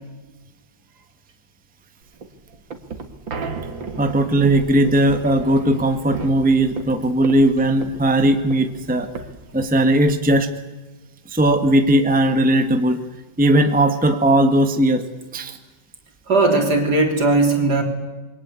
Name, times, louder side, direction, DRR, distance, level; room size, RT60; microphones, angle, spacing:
sound 1, 2.1-10.2, right 4 dB, 85° right, 2.8 m, -35 dB
voice 1, 4.0-9.1 9.5-10.5 11.3-13.0 13.4-15.0 15.3-15.6, right 1 dB, 5° right, 7 dB, 1.4 m, -18 dB
voice 2, 16.3-17.8, right 2 dB, 60° right, 3 dB, 4.4 m, -17 dB
27.5 x 23.0 x 8.4 m, 1.2 s
omnidirectional pair, 2.0 m